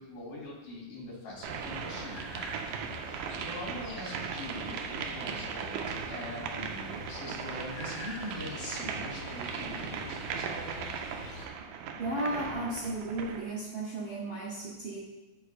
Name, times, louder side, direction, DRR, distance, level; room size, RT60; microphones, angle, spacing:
voice 1, 0.0-2.9 3.3-10.8, left 1 dB, 85° left, -5 dB, 3.7 m, -43 dB
sound 1, 1.4-11.5, left 3 dB, 60° left, 1.4 m, -46 dB
sound 2, 1.4-13.5, right 6 dB, 85° right, 2.1 m, -38 dB
voice 2, 12.0-15.0, right 1 dB, 65° right, -5 dB, 1.3 m, -34 dB
13.0 x 4.6 x 2.5 m, 1.1 s
omnidirectional pair, 3.6 m